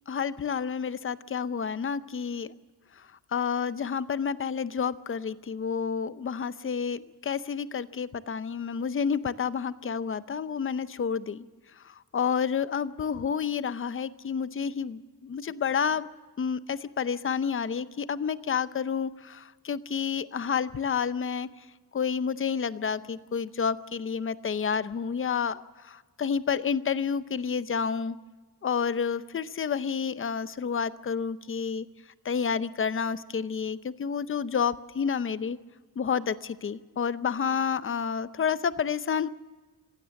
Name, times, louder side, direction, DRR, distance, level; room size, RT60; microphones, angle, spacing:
voice 1, 0.1-2.5 3.0-3.1 3.3-11.4 11.8-16.1 16.4-21.5 21.9-28.2 28.6-31.9 32.2-35.6 36.0-39.3, left 6 dB, 35° left, 14 dB, 0.7 m, -30 dB
26.5 x 16.0 x 7.1 m, 1.3 s
wide cardioid pair, 160°, 37 cm